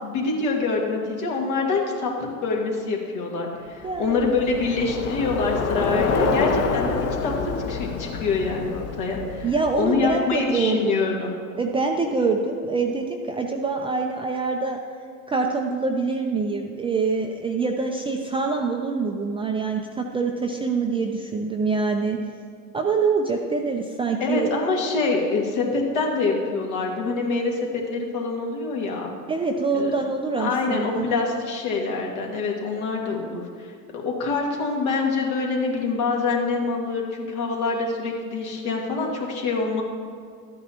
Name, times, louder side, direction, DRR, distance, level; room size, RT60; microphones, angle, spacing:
voice 1, 0.0-7.3 7.7-9.5 9.8-11.3 24.2-29.1 29.7-29.9 30.4-39.8, left 3 dB, 65° left, -1 dB, 2.2 m, -25 dB
Bicycle, 3.8-10.3, left 4 dB, 30° left, 0.9 m, -27 dB
voice 2, 3.8-4.2 9.4-11.0 11.6-14.8 15.3-22.2 22.7-24.5 29.3-31.1, right 4 dB, 15° right, 1 dB, 0.3 m, -25 dB
12.5 x 8.9 x 2.9 m, 2.2 s
hypercardioid pair, 100°, 46 cm